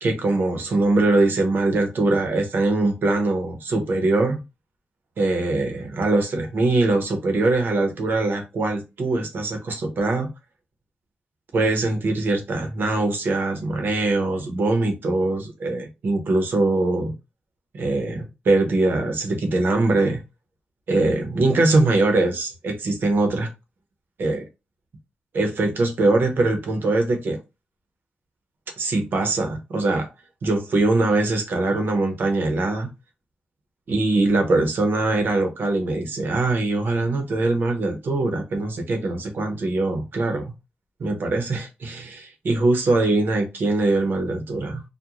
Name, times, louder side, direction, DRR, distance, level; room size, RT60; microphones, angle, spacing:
voice 1, 0.0-4.4 5.2-10.3 11.5-17.1 17.7-20.2 20.9-23.5 24.2-24.4 25.3-27.4 28.8-30.1 30.4-32.9 33.9-40.5 41.0-44.8, right 2 dB, 75° right, 0.8 m, -22 dB
2.4 x 2.2 x 2.9 m
cardioid pair, 55°, 4 cm